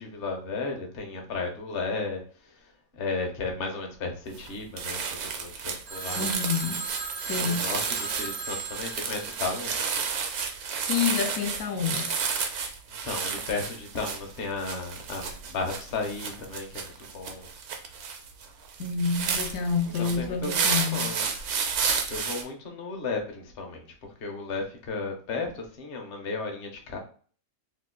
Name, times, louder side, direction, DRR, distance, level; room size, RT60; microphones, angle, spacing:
voice 1, 0.0-6.3 7.4-9.9 13.0-17.5 20.0-21.3 22.1-27.0, left 4 dB, 50° left, 0.8 m, -34 dB
sound 1, 4.3-4.5 4.8-22.4, right 6 dB, 85° right, 1.1 m, -31 dB
Telephone, 5.9-10.1, right 5 dB, 70° right, 0.6 m, -37 dB
voice 2, 6.2-6.8 7.3-7.6 10.8-12.2 18.8-21.1, left 6 dB, 80° left, 1.2 m, -28 dB
2.9 x 2.4 x 3.6 m
omnidirectional pair, 1.5 m